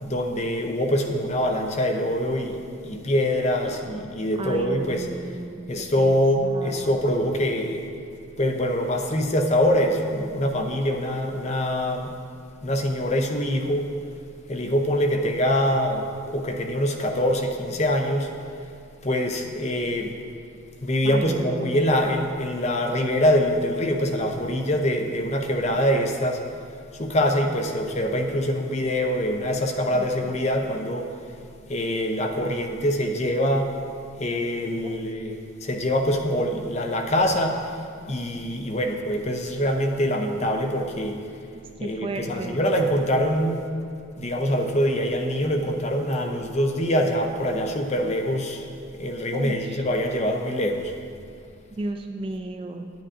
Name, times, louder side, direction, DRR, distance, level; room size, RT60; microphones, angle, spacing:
voice 1, 0.0-5.1 5.7-7.8 8.4-12.1 12.6-13.9 14.5-18.3 19.0-20.1 20.8-26.4 27.0-31.1 31.7-33.7 34.2-35.3 35.6-37.7 38.1-41.2 41.8-43.6 44.2-48.6 49.0-50.9, equal, 30° left, 4 dB, 0.5 m, -24 dB
voice 2, 3.6-4.0 4.4-6.2 6.4-7.0 21.0-21.9 29.9-30.4 34.8-35.0 41.5-42.6 49.3-49.8 51.8-52.9, right 2 dB, 25° right, 4 dB, 0.3 m, -34 dB
9.7 x 9.2 x 2.5 m, 2.4 s
head